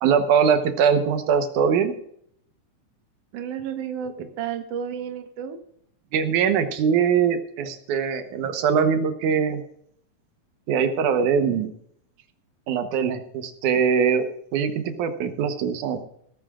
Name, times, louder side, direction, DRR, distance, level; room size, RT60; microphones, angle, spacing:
voice 1, 0.0-1.9 6.1-9.6 10.7-11.7 12.7-14.2 14.5-16.1, right 7 dB, 90° right, 8 dB, 2.6 m, -22 dB
voice 2, 3.3-5.6, right 8 dB, 60° right, 7 dB, 2.1 m, -32 dB
17.5 x 14.0 x 2.5 m, 0.69 s
omnidirectional pair, 3.4 m